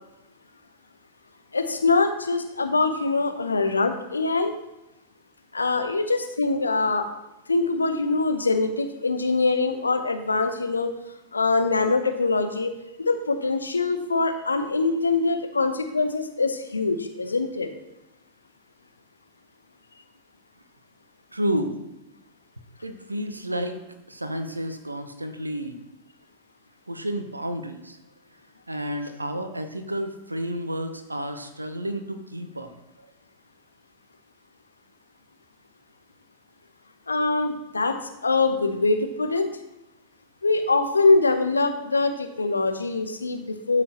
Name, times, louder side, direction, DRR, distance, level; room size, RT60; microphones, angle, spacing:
voice 1, 1.5-4.5 5.5-7.1 7.5-10.9 11.3-12.7 13.0-17.7 37.1-39.5 40.4-43.8, left 3 dB, 80° left, 7 dB, 0.9 m, -23 dB
voice 2, 21.3-21.8 22.8-23.8 24.1-25.8 26.9-28.0 28.7-32.7 33.0-33.1, equal, 85° right, 8 dB, 0.9 m, -31 dB
12.5 x 6.0 x 3.0 m, 0.93 s
figure-of-eight pair, 90°, 0 cm